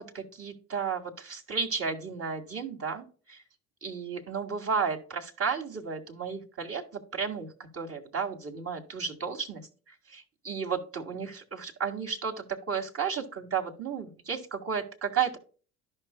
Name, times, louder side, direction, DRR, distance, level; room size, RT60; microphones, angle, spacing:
voice 1, 0.0-3.4 3.8-15.4, right 6 dB, 35° right, 1 dB, 2.0 m, -33 dB
13.5 x 5.6 x 2.2 m, 0.39 s
hypercardioid pair, 55°, 37 cm